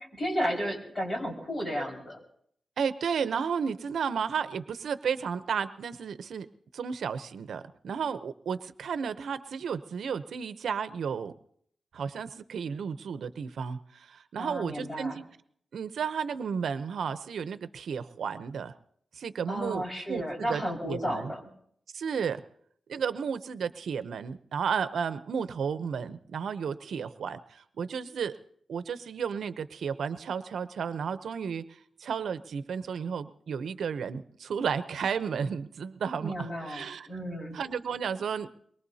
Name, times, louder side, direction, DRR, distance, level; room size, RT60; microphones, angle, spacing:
voice 1, 0.1-2.2 14.4-15.2 19.5-21.4 36.2-37.6, equal, 30° left, 0 dB, 5.0 m, -33 dB
voice 2, 2.8-6.5 6.7-11.3 11.9-15.2 15.7-18.7 19.1-20.6 20.9-21.3 21.9-22.4 22.9-28.4 28.7-31.6 32.0-37.1 37.5-38.5, right 6 dB, 80° right, 12 dB, 0.7 m, -33 dB
23.0 x 22.0 x 2.8 m, 0.66 s
wide cardioid pair, 120°, 0 cm